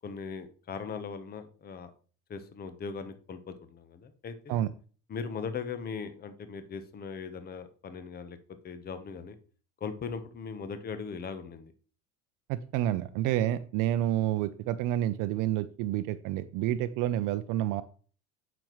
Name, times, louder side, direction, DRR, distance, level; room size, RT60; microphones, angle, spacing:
voice 1, 0.0-1.9 2.3-4.6 5.1-8.4 8.6-9.3 9.8-11.7, left 5 dB, 25° left, 10 dB, 0.9 m, -39 dB
voice 2, 12.5-17.8, right 12 dB, 65° right, 11 dB, 0.6 m, -29 dB
8.8 x 6.0 x 3.0 m, 0.40 s
supercardioid pair, 115°, 35 cm